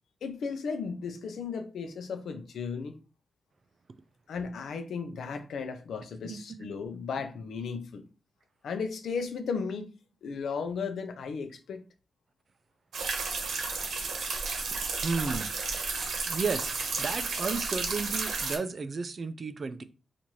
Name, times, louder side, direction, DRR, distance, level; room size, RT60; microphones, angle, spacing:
voice 1, 0.2-2.9 4.3-8.0 8.6-9.9 10.2-11.8, left 5 dB, 90° left, 0.5 m, -35 dB
sound 1, 12.9-18.6, right 4 dB, 85° right, 0.9 m, -32 dB
voice 2, 15.0-15.9 16.3-19.8, right 4 dB, 45° right, 0.4 m, -33 dB
4.5 x 2.5 x 2.7 m
wide cardioid pair, 110°, 0 cm